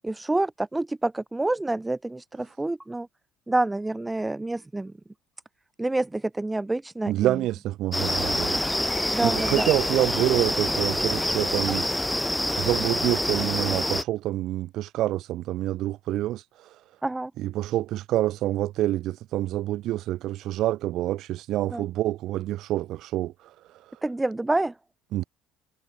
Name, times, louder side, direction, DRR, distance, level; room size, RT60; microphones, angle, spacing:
voice 1, 0.0-3.1 3.5-4.9 5.8-7.4 9.1-9.7 17.0-17.3 21.7-21.8 24.0-24.7, right 2 dB, 10° right, 7.5 m, -27 dB
voice 2, 7.1-8.6 9.2-11.8 12.6-16.8 17.4-24.0 25.1-25.2, right 14 dB, 60° right, 4.1 m, -27 dB
sound 1, 7.9-14.0, left 1 dB, 5° left, 3.0 m, -26 dB
hypercardioid pair, 65°, 0 cm